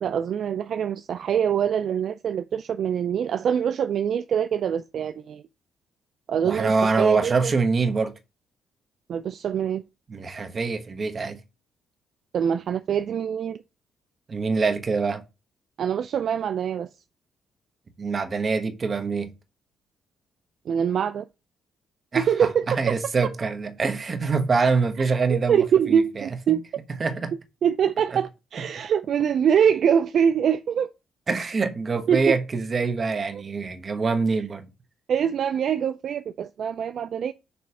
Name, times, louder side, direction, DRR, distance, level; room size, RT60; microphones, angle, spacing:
voice 1, 0.0-5.4 6.3-7.5 9.1-9.8 12.3-13.6 15.8-16.9 20.7-21.3 22.1-22.7 25.0-26.6 27.6-30.9 32.1-32.4 33.3-33.4 35.1-37.3, right 8 dB, 60° right, 0.3 m, -24 dB
voice 2, 6.4-8.1 10.1-11.4 14.3-15.2 18.0-19.3 22.1-22.3 22.7-26.6 27.0-27.3 31.3-34.7, right 4 dB, 40° right, 1.1 m, -25 dB
7.0 x 3.1 x 4.8 m
cardioid pair, 90°, 0 cm